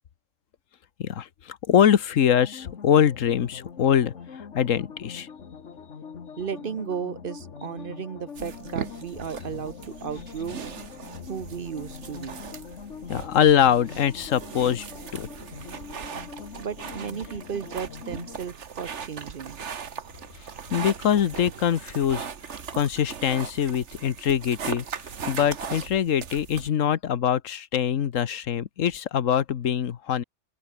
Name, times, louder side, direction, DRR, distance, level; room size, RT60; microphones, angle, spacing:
voice 1, 1.0-5.3 13.1-15.3 20.7-30.2, left 9 dB, 85° left, 1.4 m, -23 dB
sound 1, 2.4-18.4, left 6 dB, 70° left, 1.7 m, -43 dB
voice 2, 6.4-10.6 11.3-12.4 16.6-19.6, right 7 dB, 50° right, 0.9 m, -34 dB
sound 2, 8.4-26.7, right 6 dB, 65° right, 1.6 m, -39 dB
open air
omnidirectional pair, 1.3 m